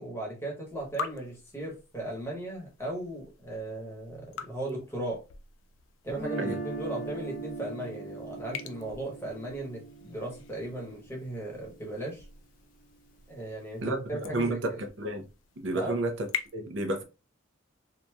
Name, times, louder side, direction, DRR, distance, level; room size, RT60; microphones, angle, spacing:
voice 1, 0.0-5.2 6.0-12.2 13.3-14.8 15.7-16.0, right 1 dB, 10° left, 1.0 m, -37 dB
sound 1, 0.6-16.5, left 6 dB, 70° left, 0.4 m, -45 dB
Guitar, 6.1-12.1, right 3 dB, 40° left, 0.8 m, -40 dB
voice 2, 13.8-15.3 15.6-17.0, right 2 dB, 65° right, 0.6 m, -31 dB
2.9 x 2.6 x 2.3 m
head